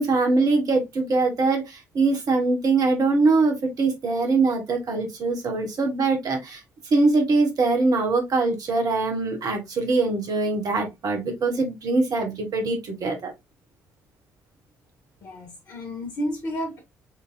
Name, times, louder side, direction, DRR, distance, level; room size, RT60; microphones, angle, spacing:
voice 1, 0.0-6.6 6.9-13.3, right 3 dB, 55° right, 1.8 m, -23 dB
voice 2, 15.2-16.8, equal, 60° left, 1.9 m, -31 dB
5.5 x 3.4 x 2.7 m
hypercardioid pair, 45°, 8 cm